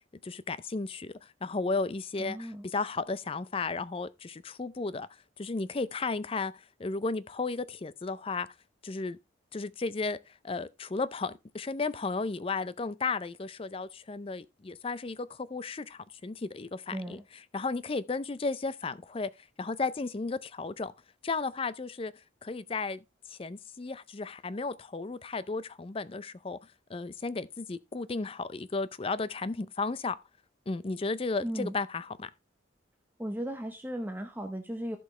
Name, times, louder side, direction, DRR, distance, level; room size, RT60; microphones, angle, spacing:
voice 1, 0.2-1.1 1.4-5.1 5.4-6.5 6.8-8.5 8.8-9.2 9.5-10.2 10.4-17.2 17.5-19.3 19.6-20.9 21.2-22.1 22.4-23.0 23.3-26.6 26.9-30.2 30.7-32.3, left 3 dB, 30° left, 0.4 m, -34 dB
voice 2, 2.2-2.7 16.9-17.2 31.3-31.8 33.2-35.0, equal, 10° right, 0.8 m, -36 dB
14.5 x 5.4 x 3.1 m
head